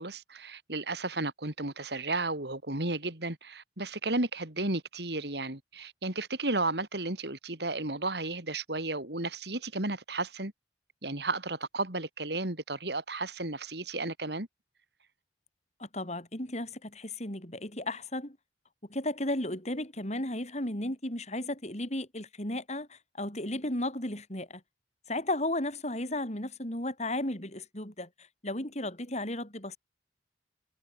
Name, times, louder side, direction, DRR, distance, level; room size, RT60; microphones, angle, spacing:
voice 1, 0.0-10.5 11.0-14.5, right 2 dB, 65° right, 3.7 m, -33 dB
voice 2, 15.8-18.4 18.9-24.6 25.1-29.8, left 1 dB, 40° left, 6.9 m, -34 dB
head